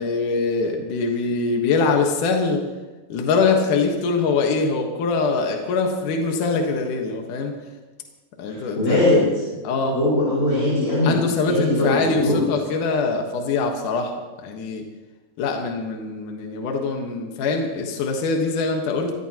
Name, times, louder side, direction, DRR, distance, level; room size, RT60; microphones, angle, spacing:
voice 1, 0.0-2.7 3.1-7.6 8.4-9.1 9.6-10.0 11.0-14.1 14.4-14.9 15.4-19.1, left 4 dB, 75° left, 2 dB, 2.9 m, -23 dB
voice 2, 8.5-9.4 9.9-11.1 11.5-12.4, left 1 dB, 25° left, -8 dB, 5.7 m, -20 dB
23.5 x 17.0 x 2.9 m, 1.2 s
omnidirectional pair, 3.8 m